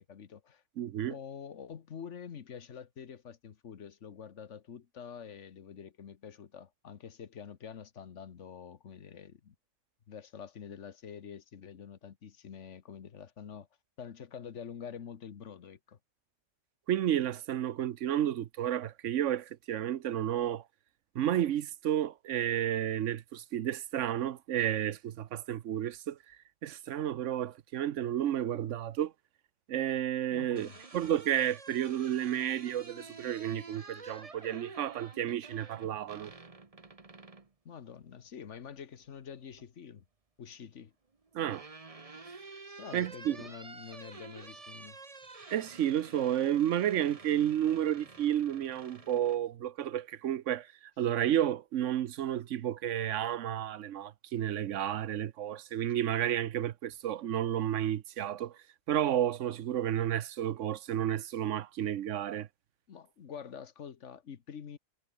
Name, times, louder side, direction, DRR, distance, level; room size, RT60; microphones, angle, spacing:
voice 1, 0.0-0.6 1.1-9.5 10.1-13.7 14.0-16.0 30.3-30.8 37.6-40.0 40.4-40.9 42.7-45.0 62.9-64.8, left 7 dB, 70° left, 1.5 m, -46 dB
voice 2, 0.8-1.1 16.9-20.6 21.1-26.4 26.6-29.1 29.7-36.3 41.3-41.7 42.9-43.4 45.5-50.7 51.0-58.6 58.9-62.5, right 11 dB, 75° right, 1.1 m, -31 dB
sound 1, 30.6-37.5 39.0-39.7 40.9-49.4, right 3 dB, 30° right, 1.5 m, -50 dB
omnidirectional pair, 1.3 m